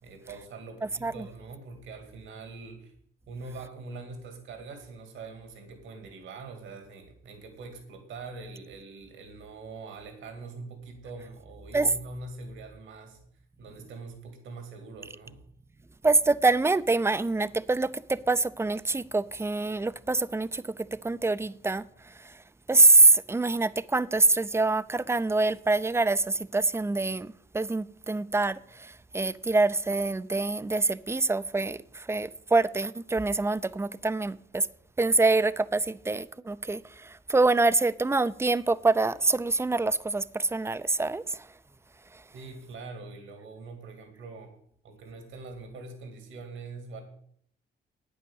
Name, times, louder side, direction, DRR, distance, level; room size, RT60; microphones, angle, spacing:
voice 1, 0.0-2.9 3.3-13.2 13.6-15.4 42.3-44.5 44.8-47.0, right 3 dB, 75° right, 2.3 m, -43 dB
voice 2, 16.0-22.4 22.7-34.7 35.0-41.5 42.1-42.2, right 3 dB, 15° right, 0.5 m, -25 dB
9.3 x 8.6 x 7.1 m
cardioid pair, 90°, 20 cm